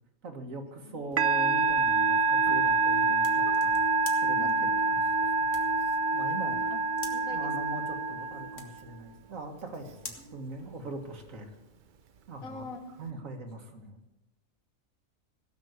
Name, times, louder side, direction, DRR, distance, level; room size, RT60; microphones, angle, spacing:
voice 1, 0.2-3.8 4.2-5.7 6.1-6.7 7.1-11.6 12.3-12.7 13.0-14.0, right 2 dB, 70° right, 5 dB, 1.9 m, -42 dB
voice 2, 0.8-1.4 4.4-5.0 6.7-6.8 7.1-7.5 8.4-8.5 10.2-10.4 12.4-12.8, left 2 dB, 80° left, 5 dB, 1.9 m, -45 dB
sound 1, 0.9-11.3, left 4 dB, 60° left, 1.9 m, -51 dB
Musical instrument, 1.2-8.8, right 3 dB, 50° right, 0.6 m, -26 dB
16.5 x 6.3 x 7.9 m, 1.0 s
omnidirectional pair, 1.4 m